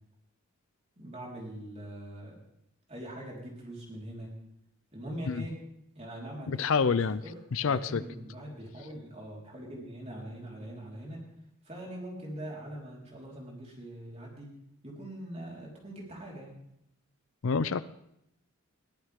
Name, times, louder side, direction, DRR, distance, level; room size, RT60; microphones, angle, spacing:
voice 1, 1.0-2.3 2.9-4.3 4.9-5.5 5.9-11.2 11.6-14.5 14.8-16.6, right 1 dB, 30° right, -3 dB, 4.4 m, -42 dB
voice 2, 6.5-7.2 7.5-8.0 17.4-17.8, left 5 dB, 60° left, 16 dB, 0.5 m, -27 dB
22.0 x 14.5 x 3.7 m, 0.78 s
head